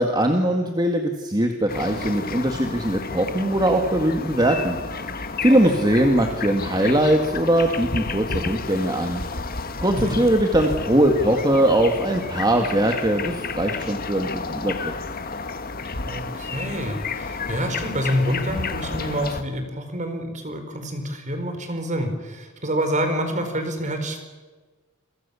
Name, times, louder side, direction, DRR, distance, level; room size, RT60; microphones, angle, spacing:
voice 1, 0.0-5.1 5.4-9.2 9.8-14.9, right 1 dB, 20° right, 4 dB, 2.0 m, -21 dB
sound 1, 1.7-19.4, left 4 dB, 45° left, 1.7 m, -31 dB
voice 2, 16.1-24.2, equal, 35° right, 6 dB, 4.7 m, -27 dB
28.5 x 23.5 x 7.1 m, 1.3 s
head